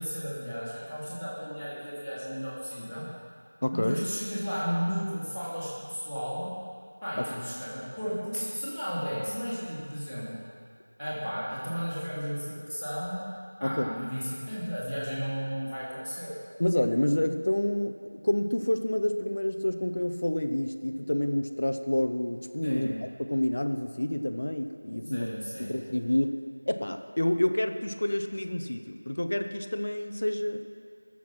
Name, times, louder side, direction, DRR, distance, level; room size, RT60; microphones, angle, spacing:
voice 1, 0.0-3.1 3.7-6.5 7.0-10.4 11.0-13.2 13.6-16.3 22.6-22.9 25.1-25.7, equal, ahead, -22 dB, 1.7 m, -34 dB
voice 2, 3.6-4.0 7.2-7.3 13.6-13.9 16.6-18.0 18.2-22.9 23.2-25.3 25.6-30.6, left 1 dB, 25° left, 7 dB, 0.5 m, -28 dB
19.0 x 7.2 x 5.9 m, 2.2 s
figure-of-eight pair, 180°, 0 cm